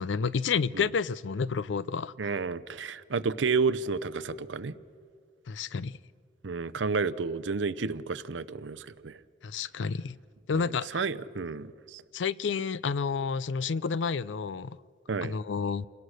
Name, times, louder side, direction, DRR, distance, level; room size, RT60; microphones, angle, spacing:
voice 1, 0.0-2.1 5.5-6.0 9.4-10.2 10.5-11.0 12.1-14.8 15.2-15.9, left 5 dB, 80° left, 0.5 m, -30 dB
voice 2, 2.2-4.8 6.4-9.2 10.5-12.0 15.1-15.4, right 4 dB, 80° right, 0.7 m, -31 dB
28.5 x 17.5 x 6.5 m
head